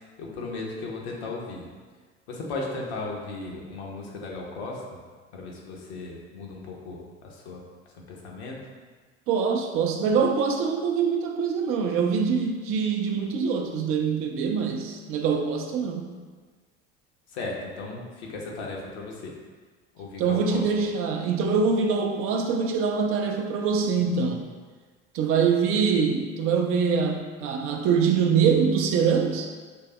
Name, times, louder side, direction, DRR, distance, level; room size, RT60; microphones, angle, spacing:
voice 1, 0.2-1.7 2.3-5.0 5.3-7.6 7.9-8.6 17.3-19.3 19.9-20.6, left 3 dB, 60° left, -2 dB, 1.0 m, -36 dB
voice 2, 9.3-16.1 20.2-24.4 25.1-29.5, right 6 dB, 40° right, 3 dB, 0.4 m, -24 dB
6.0 x 3.3 x 2.2 m, 1.5 s
figure-of-eight pair, 65°, 36 cm